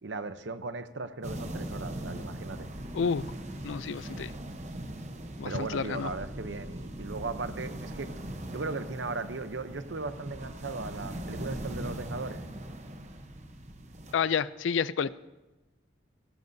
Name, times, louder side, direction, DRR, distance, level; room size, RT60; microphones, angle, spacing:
voice 1, 0.0-2.7 5.4-8.1 8.5-12.4, right 3 dB, 75° right, 11 dB, 0.8 m, -37 dB
sound 1, 1.2-14.1, right 1 dB, 35° right, 0.9 m, -40 dB
voice 2, 2.9-3.3 3.6-4.3 5.4-6.1 14.1-15.1, left 6 dB, 85° left, 17 dB, 0.4 m, -29 dB
18.0 x 17.0 x 2.7 m, 1.1 s
head